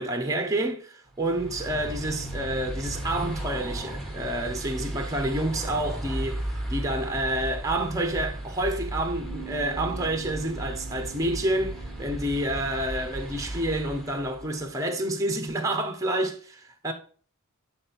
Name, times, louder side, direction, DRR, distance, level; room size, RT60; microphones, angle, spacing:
voice 1, 0.0-16.9, right 1 dB, 15° right, 0.9 m, -29 dB
sound 1, 1.1-14.6, right 1 dB, ahead, 1.5 m, -35 dB
Bass guitar, 9.2-15.5, right 17 dB, 25° left, 2.0 m, -48 dB
8.6 x 3.9 x 4.4 m
head